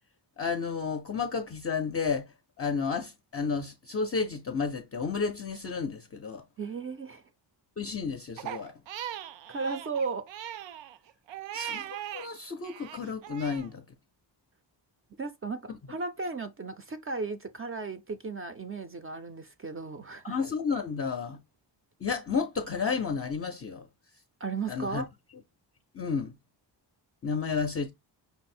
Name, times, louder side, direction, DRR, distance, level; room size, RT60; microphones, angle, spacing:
voice 1, 0.4-2.3 2.6-6.4 7.8-8.7 11.5-13.8 20.2-21.4 22.0-23.9 24.7-25.0 25.9-26.4 27.2-27.9, left 5 dB, 35° left, 0.4 m, -31 dB
voice 2, 6.6-7.2 9.5-10.3 15.2-20.4 24.4-25.1, right 4 dB, 30° right, 0.4 m, -35 dB
Crying sobbing, 8.4-12.3 12.6-13.7, right 11 dB, 90° right, 0.5 m, -39 dB
5.5 x 2.0 x 4.2 m
wide cardioid pair, 165°, 44 cm